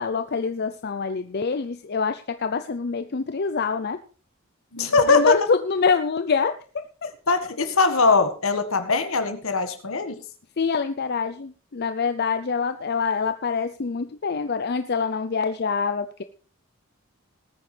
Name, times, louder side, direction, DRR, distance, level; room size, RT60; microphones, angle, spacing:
voice 1, 0.0-4.0 5.1-7.1 10.6-16.2, left 5 dB, 50° left, 10 dB, 0.5 m, -25 dB
voice 2, 4.7-5.4 7.3-10.2, left 4 dB, 75° left, 8 dB, 1.7 m, -21 dB
19.5 x 9.3 x 3.3 m, 0.38 s
head